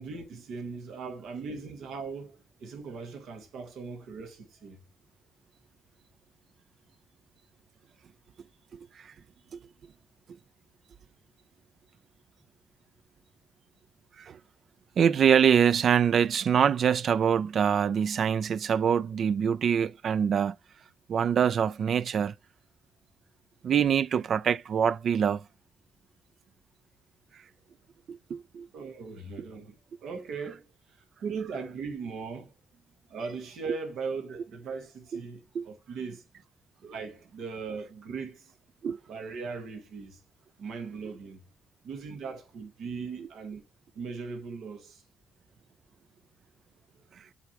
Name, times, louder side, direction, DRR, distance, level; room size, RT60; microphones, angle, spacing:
voice 1, 0.0-4.8 28.7-29.7 30.0-30.6 31.2-32.5 33.1-36.2 36.8-38.5 39.1-40.2 40.6-41.4 41.8-43.6 43.9-45.0, right 5 dB, 75° right, 1.5 m, -38 dB
voice 2, 15.0-20.5 21.1-22.3 23.6-25.4 28.1-28.7 35.1-35.2 35.5-35.7 38.8-39.0 43.2-43.3, right 8 dB, 55° right, 0.3 m, -24 dB
8.3 x 3.5 x 4.5 m
cardioid pair, 90°, 0 cm